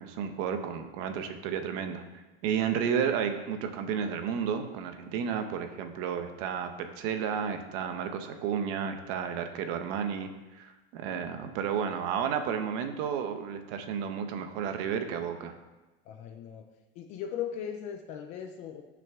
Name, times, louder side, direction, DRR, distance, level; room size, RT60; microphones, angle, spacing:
voice 1, 0.0-2.0 2.4-15.5, right 7 dB, 40° right, 7 dB, 0.9 m, -32 dB
voice 2, 16.1-16.7 17.0-18.8, left 9 dB, 25° left, 4 dB, 0.4 m, -38 dB
16.5 x 6.0 x 3.6 m, 1.1 s
supercardioid pair, 170°, 32 cm